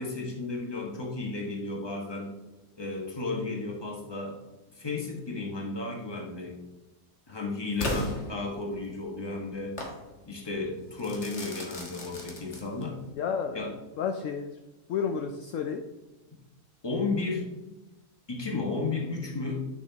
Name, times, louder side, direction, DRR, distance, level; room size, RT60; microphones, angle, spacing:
voice 1, 0.0-2.4 2.8-4.4 4.7-6.6 7.3-9.8 10.3-13.0 13.5-13.7 16.8-17.5 18.3-19.7, left 3 dB, 20° left, 0 dB, 1.2 m, -33 dB
Crackle / Fireworks, 7.8-9.0 9.8-10.0 11.0-13.0, left 1 dB, 50° left, 1.6 m, -36 dB
voice 2, 13.1-14.6 14.9-15.8, left 6 dB, 70° left, 5 dB, 0.9 m, -32 dB
9.9 x 6.4 x 2.8 m, 1.1 s
omnidirectional pair, 1.6 m